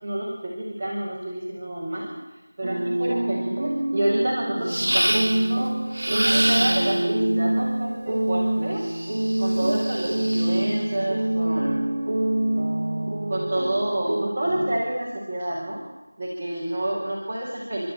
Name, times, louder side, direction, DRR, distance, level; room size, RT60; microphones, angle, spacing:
voice 1, 0.0-2.1 2.6-5.7 6.1-8.8 9.1-11.8 13.3-15.8 16.2-17.9, right 1 dB, 15° right, -9 dB, 4.8 m, -28 dB
sound 1, 2.6-14.8, right 1 dB, 40° right, 2.2 m, -26 dB
sound 2, 4.7-5.5 5.9-7.2 8.9-10.8, right 1 dB, 65° right, 2.1 m, -26 dB
29.5 x 12.5 x 8.8 m, 1.1 s
figure-of-eight pair, 175°, 0 cm